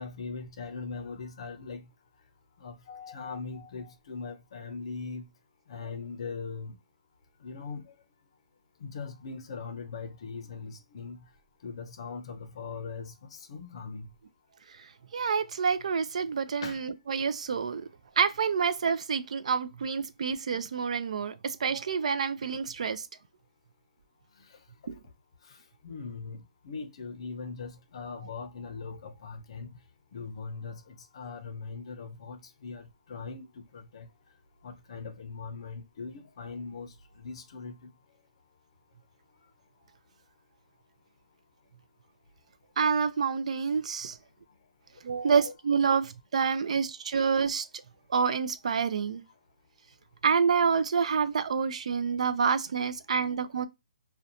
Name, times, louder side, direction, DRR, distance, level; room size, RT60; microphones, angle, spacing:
voice 1, 0.0-1.8 2.6-5.2 5.7-6.8 7.4-7.9 8.8-11.2 11.6-14.1 16.6-16.8 25.5-25.6 25.8-29.7 30.1-34.1 34.6-37.7 45.2-45.5, left 4 dB, 45° left, 0.5 m, -40 dB
voice 2, 15.1-17.8 18.2-23.1 24.9-25.0 42.8-44.2 45.0-47.7 48.1-49.2 50.2-53.7, right 6 dB, 60° right, 0.3 m, -28 dB
2.5 x 2.1 x 2.7 m
hypercardioid pair, 165°, 4 cm